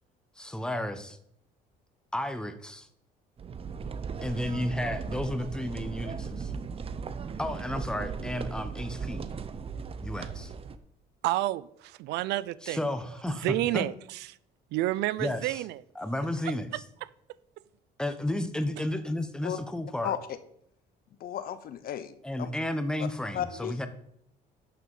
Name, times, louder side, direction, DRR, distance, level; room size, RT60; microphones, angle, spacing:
voice 1, 0.4-1.2 2.1-2.9 4.2-6.5 7.4-9.3 10.0-10.5 12.6-13.9 15.2-15.6 15.9-16.8 18.0-20.1 22.2-23.9, left 1 dB, 5° left, 9 dB, 1.1 m, -32 dB
sound 1, 3.4-10.8, right 5 dB, 35° right, 0.8 m, -37 dB
voice 2, 11.2-12.8 13.3-14.2 14.7-15.8 16.4-16.5, right 16 dB, 85° right, 19 dB, 0.5 m, -30 dB
voice 3, 20.0-20.4 21.2-22.5 23.3-23.9, left 10 dB, 60° left, 12 dB, 1.0 m, -34 dB
12.0 x 6.1 x 5.6 m, 0.72 s
cardioid pair, 110°, 17 cm